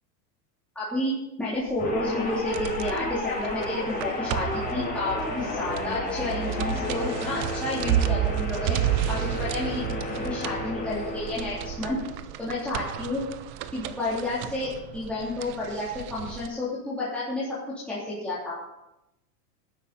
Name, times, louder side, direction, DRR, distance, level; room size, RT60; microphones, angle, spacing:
voice 1, 0.7-8.8 9.1-12.0 12.4-13.2 13.7-17.5 17.9-18.6, left 2 dB, ahead, -9 dB, 3.4 m, -31 dB
sound 1, 1.7-16.5, right 12 dB, 25° right, 0.4 m, -32 dB
sound 2, 1.8-12.1, left 2 dB, 20° left, 5.4 m, -33 dB
17.5 x 10.0 x 4.3 m, 0.90 s
supercardioid pair, 145°, 49 cm